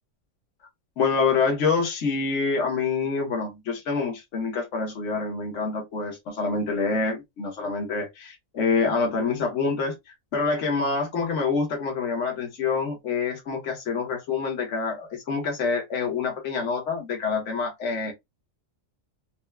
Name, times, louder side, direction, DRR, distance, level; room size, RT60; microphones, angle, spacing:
voice 1, 1.0-9.9 10.3-18.1, left 4 dB, 65° left, 1.4 m, -26 dB
4.3 x 2.2 x 2.2 m
omnidirectional pair, 1.4 m